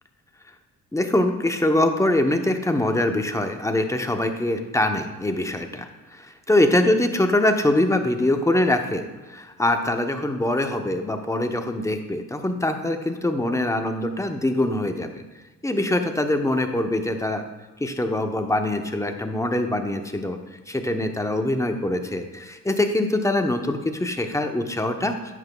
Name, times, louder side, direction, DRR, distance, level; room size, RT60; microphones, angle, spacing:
voice 1, 0.9-15.2 15.6-17.4 17.8-20.4 20.7-25.2, left 1 dB, 10° left, 6 dB, 0.8 m, -23 dB
10.5 x 7.9 x 2.3 m, 1.2 s
cardioid pair, 90°, 30 cm